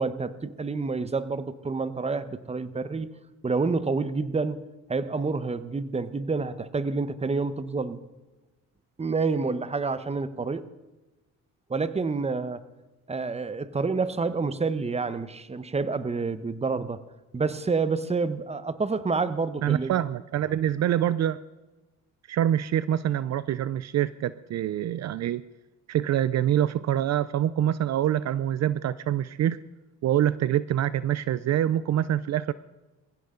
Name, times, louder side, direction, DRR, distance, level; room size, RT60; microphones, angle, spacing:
voice 1, 0.0-3.1 3.4-4.6 4.9-8.1 9.0-10.7 11.7-12.6 13.1-17.0 17.3-19.9, right 4 dB, 20° right, 13 dB, 1.0 m, -28 dB
voice 2, 19.6-21.4 22.3-25.4 25.9-29.6 30.0-32.5, right 11 dB, 60° right, 16 dB, 0.6 m, -25 dB
22.0 x 16.0 x 3.9 m, 1.1 s
cardioid pair, 90°, 30 cm